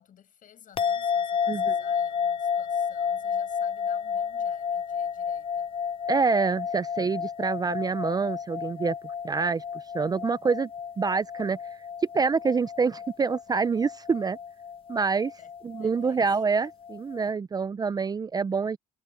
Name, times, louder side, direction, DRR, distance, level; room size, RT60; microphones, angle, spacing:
voice 1, 0.0-5.7 15.4-15.5 15.8-16.4, left 9 dB, 55° left, 6.2 m, -54 dB
sound 1, 0.8-17.3, left 7 dB, 35° left, 0.4 m, -31 dB
voice 2, 1.5-1.8 6.1-9.0 9.2-10.7 11.0-11.9 12.1-14.4 14.9-15.3 15.6-18.8, right 5 dB, 25° right, 0.5 m, -26 dB
cardioid pair, 110°, 17 cm